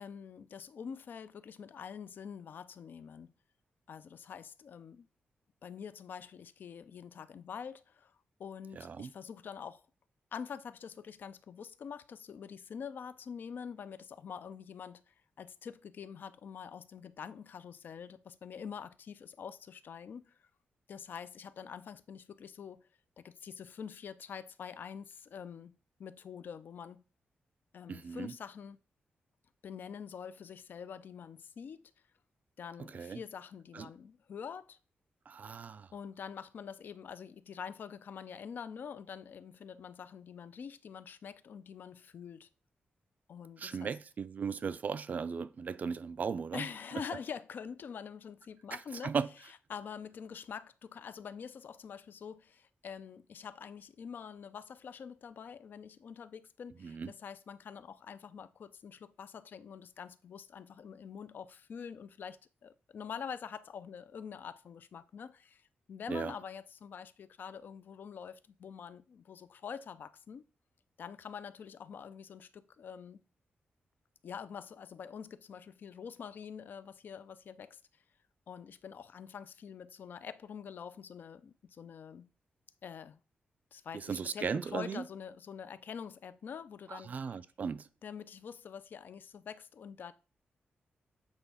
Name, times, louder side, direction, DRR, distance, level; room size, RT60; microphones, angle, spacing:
voice 1, 0.0-3.3 3.9-5.1 5.6-9.8 10.3-20.4 20.9-22.9 23.2-27.0 27.7-28.8 29.6-31.9 32.6-34.8 35.9-42.5 43.3-44.0 46.5-49.1 49.7-70.4 71.0-73.2 74.2-77.8 78.5-82.3 82.8-83.2 83.7-87.4 88.0-90.1, left 7 dB, 60° left, 0.5 m, -46 dB
voice 2, 8.8-9.1 27.9-28.3 32.9-33.2 33.7-33.9 35.3-35.9 43.6-46.7 48.7-49.3 56.8-57.1 66.1-66.3 83.9-85.0 86.9-87.9, right 6 dB, 45° right, 0.4 m, -37 dB
8.1 x 3.5 x 5.5 m
wide cardioid pair, 145°, 4 cm